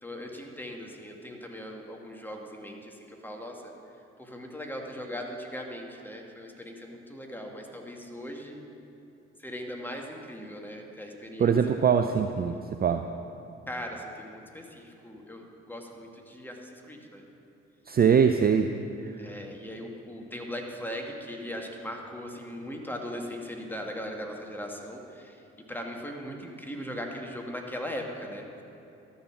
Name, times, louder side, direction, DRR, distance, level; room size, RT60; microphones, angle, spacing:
voice 1, 0.0-3.7 4.2-8.6 9.4-11.5 13.7-17.2 19.2-25.4 25.7-28.6, equal, 5° left, 1 dB, 1.9 m, -39 dB
voice 2, 11.4-13.0 17.9-18.7 19.0-19.1, right 7 dB, 30° right, 7 dB, 0.5 m, -22 dB
12.5 x 7.0 x 6.1 m, 2.8 s
figure-of-eight pair, 40°, 32 cm